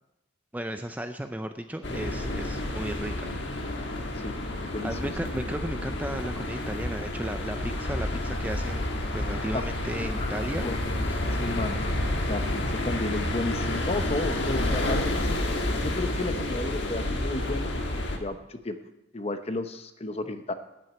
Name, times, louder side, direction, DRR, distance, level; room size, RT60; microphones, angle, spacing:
voice 1, 0.5-3.1 4.8-8.8 9.1-10.7 11.1-11.3, right 1 dB, 10° right, 7 dB, 0.5 m, -35 dB
sound 1, 1.8-18.2, left 1 dB, 60° left, 1.5 m, -29 dB
voice 2, 4.2-5.1 9.5-9.6 10.0-10.3 10.6-11.0 11.3-11.8 12.2-15.4 15.8-18.8 19.1-20.5, left 2 dB, 30° left, 8 dB, 0.8 m, -33 dB
9.1 x 8.6 x 9.1 m, 0.92 s
head